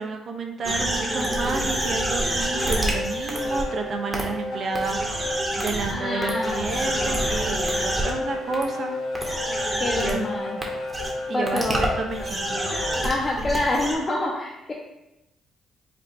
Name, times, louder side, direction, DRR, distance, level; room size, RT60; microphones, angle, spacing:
voice 1, 0.0-5.0 5.2-8.9 9.9-10.3 11.3-12.6, right 4 dB, 55° right, 3 dB, 0.5 m, -30 dB
sound 1, 0.6-13.2, left 2 dB, 75° left, 0.5 m, -32 dB
sound 2, 0.6-3.6 4.1-4.2 4.7-5.9 6.2-8.1 8.5-8.6 9.1-10.1 10.6-10.7 10.9-11.1 11.5-13.9, right 1 dB, 15° right, 0.8 m, -27 dB
voice 2, 5.9-6.9 9.8-10.6 11.3-11.9 13.0-14.7, left 1 dB, 30° left, -3 dB, 0.6 m, -27 dB
4.0 x 2.1 x 4.1 m, 0.92 s
cardioid pair, 90°, 0 cm